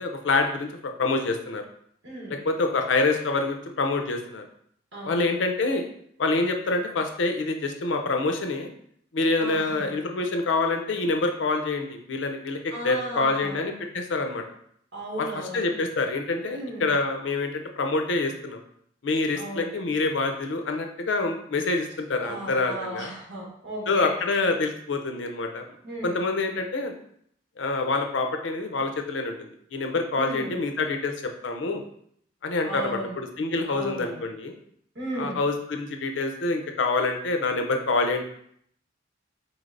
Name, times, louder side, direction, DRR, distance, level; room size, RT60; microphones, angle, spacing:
voice 1, 0.0-1.6 2.3-4.5 5.0-5.8 6.2-8.7 9.1-14.4 15.2-18.6 19.0-23.1 23.9-25.6 26.0-26.9 27.6-31.8 32.4-34.5 35.2-38.2, left 3 dB, 90° left, 5 dB, 0.5 m, -26 dB
voice 2, 2.0-2.4 4.9-5.3 9.4-9.9 12.7-13.6 14.9-15.7 16.5-16.9 19.4-19.7 22.2-24.1 25.8-26.1 30.1-30.5 32.6-33.1 33.7-34.2 34.9-35.4, right 1 dB, 75° right, -4 dB, 1.5 m, -35 dB
4.1 x 3.2 x 2.5 m, 0.67 s
head